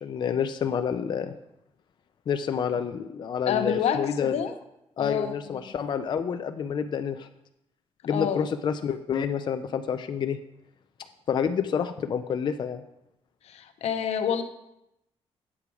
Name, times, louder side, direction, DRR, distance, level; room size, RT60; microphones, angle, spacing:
voice 1, 0.0-1.3 2.3-4.3 5.0-7.3 8.1-10.4 11.3-12.8, left 7 dB, 45° left, 8 dB, 0.4 m, -28 dB
voice 2, 3.5-4.5 5.0-5.7 8.1-8.5 13.4-14.4, left 8 dB, 85° left, 9 dB, 0.8 m, -28 dB
8.5 x 7.0 x 4.8 m, 0.85 s
cardioid pair, 130°, 11 cm